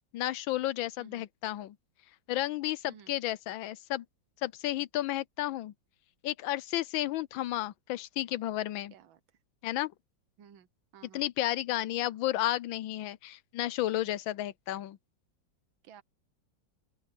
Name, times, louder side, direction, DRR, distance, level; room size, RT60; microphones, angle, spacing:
voice 1, 0.1-1.7 2.3-4.0 4.4-5.7 6.2-8.9 9.6-9.9 11.1-15.0, left 15 dB, 85° left, 1.5 m, -32 dB
voice 2, 1.0-1.2 2.9-3.1 8.9-9.2 10.4-10.7 10.9-11.2 15.9-16.0, right 8 dB, 90° right, 1.8 m, -54 dB
open air
omnidirectional pair, 2.1 m